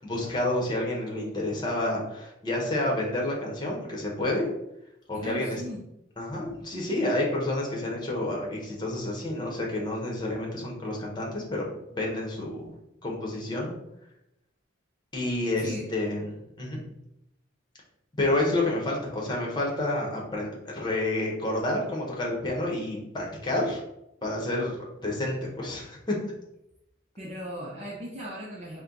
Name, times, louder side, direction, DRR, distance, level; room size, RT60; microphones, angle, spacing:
voice 1, 0.0-4.5 5.1-5.6 6.2-12.7 13.0-13.7 15.1-16.8 18.2-23.8 24.2-26.2, left 1 dB, 25° left, -2 dB, 1.0 m, -29 dB
voice 2, 5.1-5.8 15.6-15.9 27.2-28.8, equal, 35° right, -4 dB, 0.6 m, -37 dB
4.3 x 2.2 x 3.7 m, 0.83 s
head